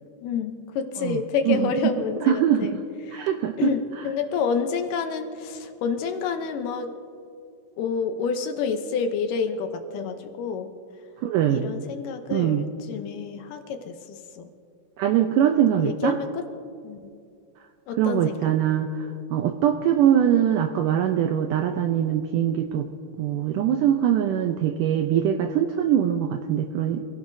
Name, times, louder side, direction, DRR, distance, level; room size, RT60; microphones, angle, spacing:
voice 1, 0.2-2.8 3.0-3.2 3.6-6.9 7.8-10.7 11.5-14.5 15.7-16.4 16.8-17.1 17.9-18.5, left 5 dB, 75° left, 6 dB, 2.1 m, -28 dB
voice 2, 2.2-2.8 3.1-3.7 11.2-11.7 12.3-12.7 15.0-16.2 18.0-19.0 19.3-22.9 23.2-27.0, right 10 dB, 90° right, 5 dB, 1.8 m, -22 dB
26.5 x 16.5 x 2.7 m, 2.4 s
omnidirectional pair, 4.5 m